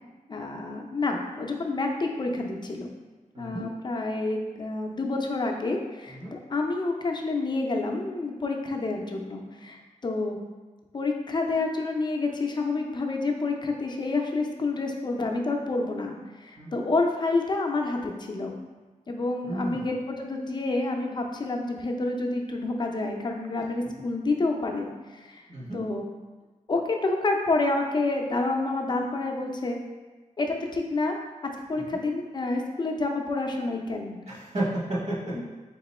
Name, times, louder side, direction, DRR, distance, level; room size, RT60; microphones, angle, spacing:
voice 1, 0.3-2.9 3.4-10.4 10.9-18.5 19.1-25.4 25.7-26.0 26.7-29.8 30.4-31.2 31.7-34.2 35.3-35.4, left 3 dB, 35° left, 2 dB, 0.5 m, -28 dB
voice 2, 3.3-3.7 6.1-6.3 16.6-16.8 19.4-19.8 25.5-25.8 34.3-35.4, right 1 dB, 60° right, -6 dB, 1.4 m, -32 dB
3.9 x 2.9 x 4.1 m, 1.3 s
wide cardioid pair, 155°, 14 cm